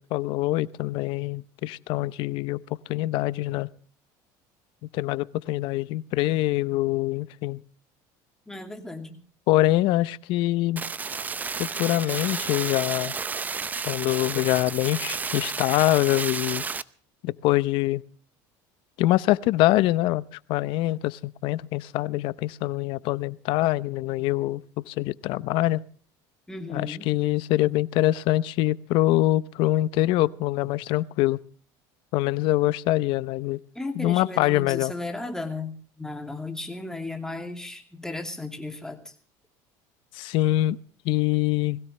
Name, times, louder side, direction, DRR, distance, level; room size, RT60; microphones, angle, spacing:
voice 1, 0.0-3.7 4.9-7.6 9.5-10.8 11.6-13.1 13.9-16.6 17.2-18.0 19.0-20.2 20.5-24.6 24.9-25.8 26.7-31.4 32.1-33.6 34.0-34.9 40.1-40.8 41.0-41.8, left 16 dB, 65° left, 0.7 m, -24 dB
voice 2, 8.5-9.2 26.5-27.1 33.7-39.0, left 2 dB, 5° left, 2.7 m, -35 dB
sound 1, 10.8-16.8, right 5 dB, 20° right, 0.6 m, -31 dB
21.0 x 16.5 x 3.3 m
cardioid pair, 130°, 9 cm